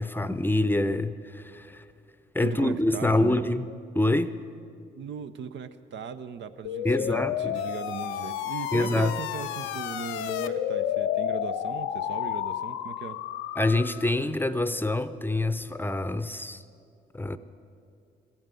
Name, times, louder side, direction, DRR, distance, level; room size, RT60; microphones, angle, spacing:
voice 1, 0.0-1.8 2.3-3.7 3.9-4.4 6.8-7.6 8.7-9.2 13.6-16.6 17.1-17.4, left 2 dB, 10° left, 13 dB, 0.6 m, -26 dB
voice 2, 2.4-3.4 5.0-13.2, right 7 dB, 65° right, 11 dB, 0.6 m, -38 dB
sound 1, 6.6-14.1, left 11 dB, 90° left, 0.5 m, -31 dB
14.0 x 8.8 x 8.2 m, 2.4 s
supercardioid pair, 50°, 20 cm